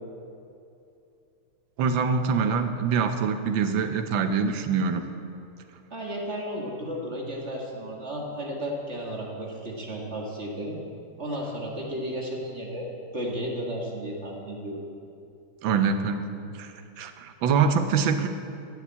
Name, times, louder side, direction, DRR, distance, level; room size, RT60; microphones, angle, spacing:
voice 1, 1.8-5.1 15.6-16.2 16.5-18.3, right 5 dB, 70° right, 8 dB, 1.5 m, -24 dB
voice 2, 5.9-10.8 11.2-14.8, equal, 35° right, -2 dB, 1.7 m, -33 dB
13.5 x 7.1 x 8.5 m, 2.6 s
omnidirectional pair, 2.4 m